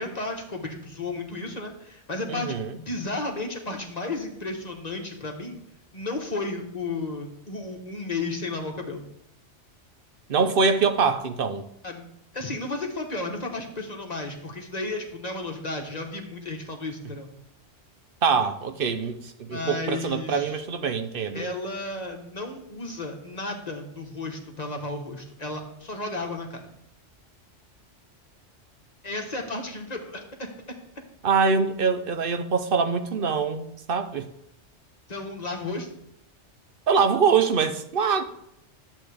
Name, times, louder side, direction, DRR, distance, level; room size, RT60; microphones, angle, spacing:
voice 1, 0.0-5.6 5.9-9.0 11.8-12.1 12.3-17.3 19.5-20.6 21.3-26.6 29.0-30.5 35.1-36.0, left 2 dB, 35° left, 1.2 m, -33 dB
voice 2, 2.3-2.7 10.3-11.6 18.2-21.5 31.2-34.3 36.9-38.2, right 5 dB, 55° right, 0.8 m, -24 dB
11.5 x 7.6 x 3.4 m
omnidirectional pair, 1.2 m